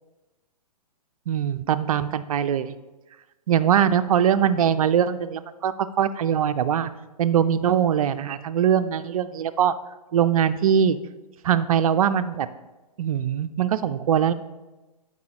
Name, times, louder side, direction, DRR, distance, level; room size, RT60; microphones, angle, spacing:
voice 1, 1.3-2.7 3.5-6.9 7.2-9.7 10.1-11.0 11.4-12.5 13.0-14.3, right 9 dB, 60° right, 12 dB, 0.5 m, -22 dB
12.0 x 4.8 x 2.9 m, 1.1 s
hypercardioid pair, 135°, 21 cm